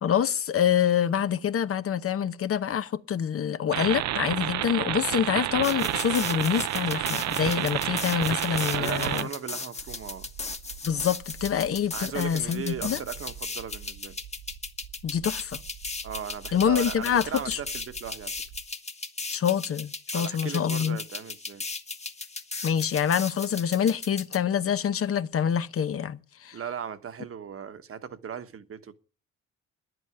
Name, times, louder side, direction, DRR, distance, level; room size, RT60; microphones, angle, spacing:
voice 1, 0.0-9.3 10.8-13.0 15.0-15.6 16.5-17.6 19.3-21.0 22.6-26.6, left 8 dB, 50° left, 0.9 m, -26 dB
sound 1, 3.7-9.2, right 14 dB, 65° right, 0.5 m, -29 dB
sound 2, 5.6-24.4, left 3 dB, 20° left, 1.3 m, -37 dB
voice 2, 8.7-10.3 11.9-14.2 16.0-18.3 20.1-21.6 26.5-29.0, right 7 dB, 45° right, 1.2 m, -37 dB
sound 3, 9.8-18.6, right 10 dB, 85° right, 1.1 m, -47 dB
10.5 x 8.0 x 9.9 m
cardioid pair, 90°, 30 cm